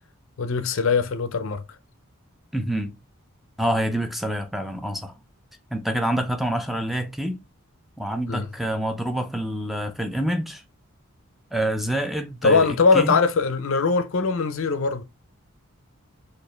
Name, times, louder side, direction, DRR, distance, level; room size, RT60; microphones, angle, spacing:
voice 1, 0.4-1.6 8.3-8.5 12.4-15.0, left 4 dB, 65° left, 0.5 m, -21 dB
voice 2, 2.5-3.0 3.6-5.1 5.7-7.4 8.0-10.6 11.5-13.2, right 1 dB, ahead, 0.4 m, -27 dB
4.3 x 2.5 x 3.1 m
head